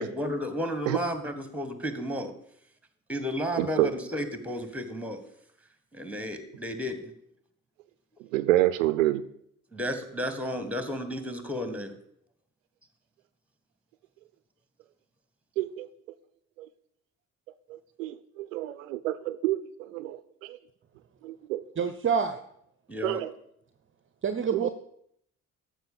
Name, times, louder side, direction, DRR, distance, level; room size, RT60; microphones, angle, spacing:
voice 1, 0.0-2.3 3.1-5.2 5.9-7.1 9.7-11.9 22.9-23.2, equal, 5° right, 10 dB, 1.7 m, -32 dB
voice 2, 3.6-3.9 8.3-9.3 15.6-15.9 16.6-16.7 17.7-20.6 21.2-21.6 23.0-23.3 24.5-24.7, right 15 dB, 80° right, 14 dB, 0.5 m, -28 dB
voice 3, 21.8-22.4 24.2-24.7, right 6 dB, 30° right, 9 dB, 0.8 m, -27 dB
13.5 x 4.9 x 6.9 m, 0.71 s
figure-of-eight pair, 45°, 39 cm